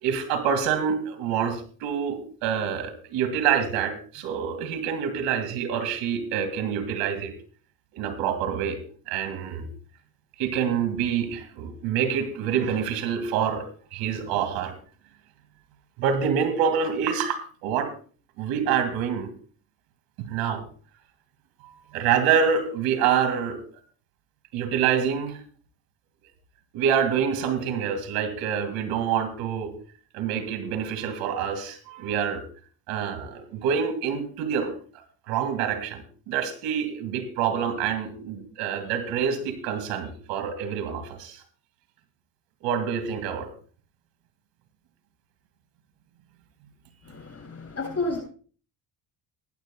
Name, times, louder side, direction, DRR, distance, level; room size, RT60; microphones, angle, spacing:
voice 1, 0.0-7.3 7.9-8.8 9.1-9.7 10.4-14.7 16.0-17.9 18.4-19.3 20.3-20.6 21.9-23.6 24.5-25.4 26.7-29.7 30.1-32.4 32.9-34.7 35.3-41.4 42.6-43.5, right 7 dB, 90° right, 8 dB, 2.1 m, -26 dB
voice 2, 47.0-48.2, left 2 dB, 35° left, 0 dB, 7.6 m, -31 dB
20.0 x 10.5 x 2.3 m, 0.42 s
cardioid pair, 85°, 43 cm